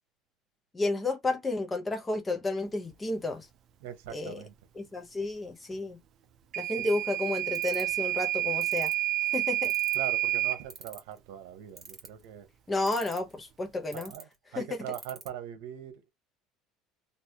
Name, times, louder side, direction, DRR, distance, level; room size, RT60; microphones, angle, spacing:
voice 1, 0.7-3.5 4.1-4.4 4.8-6.0 6.6-8.9 9.3-9.7 12.7-14.1 14.6-14.7, left 2 dB, 15° left, 0.9 m, -31 dB
voice 2, 3.8-4.5 6.8-6.9 9.9-12.5 13.9-16.1, right 10 dB, 85° right, 0.9 m, -41 dB
Microwave oven / Alarm, 6.5-10.6, right 16 dB, 50° right, 0.5 m, -29 dB
sound 1, 7.5-7.9 8.6-8.9 9.6-10.1 10.7-11.2 11.8-12.2 12.9-13.3 13.9-14.2 14.9-15.3, right 5 dB, 25° right, 1.5 m, -44 dB
3.3 x 2.6 x 2.9 m
cardioid pair, 130°, 0 cm